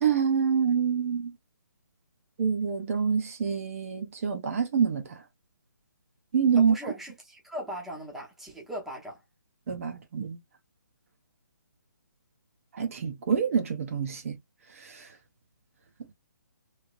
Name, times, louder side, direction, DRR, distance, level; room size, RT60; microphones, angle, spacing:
voice 1, 0.0-1.3 2.4-5.2 6.3-6.8 9.7-10.4 12.7-14.4 14.8-15.1, right 6 dB, 45° right, 0.7 m, -26 dB
voice 2, 6.6-9.2, equal, ahead, 0.8 m, -39 dB
3.1 x 2.7 x 2.4 m
hypercardioid pair, 150°, 10 cm